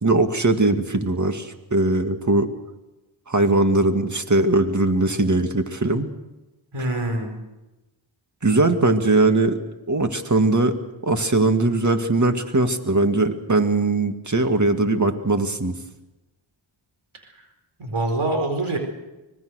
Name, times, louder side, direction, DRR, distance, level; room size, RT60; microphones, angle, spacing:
voice 1, 0.0-2.5 3.3-6.1 8.4-9.6 9.9-10.7 11.0-15.7, right 2 dB, 35° right, 7 dB, 2.2 m, -20 dB
voice 2, 6.7-7.4 17.8-18.8, right 2 dB, 85° right, 4 dB, 4.6 m, -24 dB
25.0 x 20.0 x 6.4 m, 1.0 s
wide cardioid pair, 55°, 48 cm